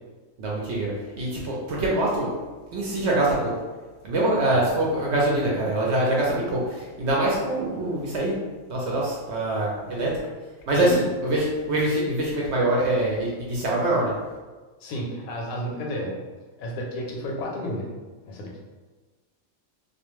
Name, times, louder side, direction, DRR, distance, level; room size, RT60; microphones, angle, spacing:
voice 1, 0.4-2.3 2.7-3.5 4.0-8.4 8.7-10.1 10.7-14.1, right 1 dB, 65° right, -4 dB, 0.7 m, -24 dB
voice 2, 14.8-16.1 16.6-17.9 18.3-18.5, equal, 80° left, -1 dB, 1.0 m, -31 dB
2.3 x 2.1 x 3.0 m, 1.3 s
omnidirectional pair, 1.5 m